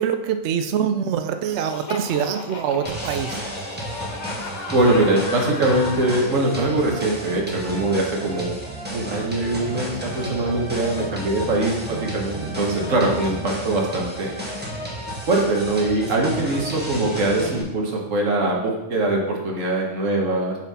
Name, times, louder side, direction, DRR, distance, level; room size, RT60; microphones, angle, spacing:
voice 1, 0.0-3.4 11.0-11.1, right 8 dB, 80° right, 8 dB, 0.6 m, -24 dB
Laughter, 1.5-6.3, left 4 dB, 60° left, 0.4 m, -35 dB
sound 1, 2.8-17.6, right 1 dB, 5° right, 1.3 m, -32 dB
voice 2, 4.7-8.5 8.9-14.3 15.3-20.6, right 2 dB, 55° right, -1 dB, 1.5 m, -22 dB
7.3 x 4.3 x 4.1 m, 0.97 s
omnidirectional pair, 1.7 m